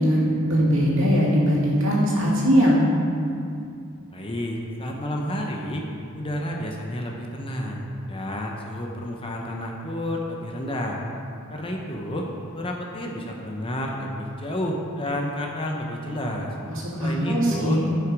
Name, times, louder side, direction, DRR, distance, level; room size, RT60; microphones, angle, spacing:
voice 1, 0.0-2.8 16.7-17.9, equal, 60° right, -5 dB, 2.5 m, -21 dB
voice 2, 4.1-5.8 6.1-11.0 11.5-12.3 12.5-16.5 17.0-17.8, left 1 dB, 25° left, 0 dB, 0.9 m, -30 dB
11.5 x 6.0 x 4.8 m, 2.4 s
head